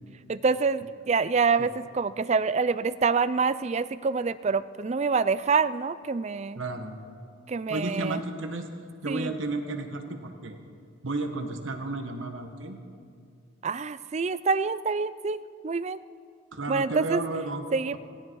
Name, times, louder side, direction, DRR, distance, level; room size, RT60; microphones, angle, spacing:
voice 1, 0.3-6.6 7.5-8.2 9.1-9.3 13.6-15.4 15.6-16.0 16.7-17.2 17.7-18.0, right 4 dB, 35° right, 15 dB, 0.4 m, -26 dB
voice 2, 6.5-7.0 7.7-8.7 9.0-10.6 11.0-12.8 16.5-17.7, right 2 dB, 70° right, 5 dB, 1.5 m, -32 dB
17.5 x 16.5 x 4.7 m, 2.2 s
head